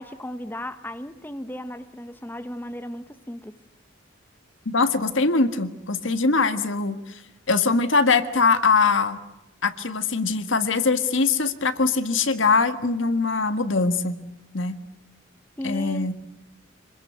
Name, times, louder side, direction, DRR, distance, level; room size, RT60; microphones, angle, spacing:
voice 1, 0.0-3.5 15.6-16.1, equal, 10° left, 10 dB, 0.8 m, -35 dB
voice 2, 4.7-7.2 7.5-9.2 9.6-14.2 14.5-14.8 15.6-16.1, left 4 dB, 70° left, 10 dB, 1.6 m, -22 dB
26.0 x 21.0 x 8.1 m, 0.95 s
head